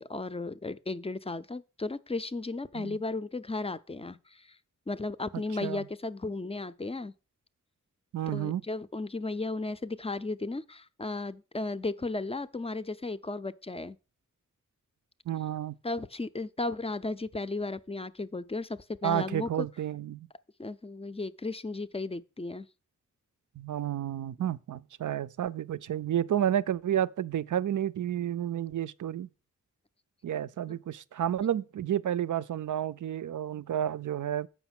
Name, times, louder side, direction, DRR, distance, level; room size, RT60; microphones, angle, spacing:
voice 1, 0.0-4.6 4.9-7.1 8.3-14.0 15.8-19.5 20.6-22.7 30.7-30.8, left 3 dB, 20° left, 0.4 m, -35 dB
voice 2, 8.1-8.6 15.3-15.7 19.0-20.3 23.6-29.3 30.2-34.5, right 10 dB, 75° right, 0.5 m, -31 dB
8.0 x 5.8 x 5.9 m
wide cardioid pair, 110°, 30 cm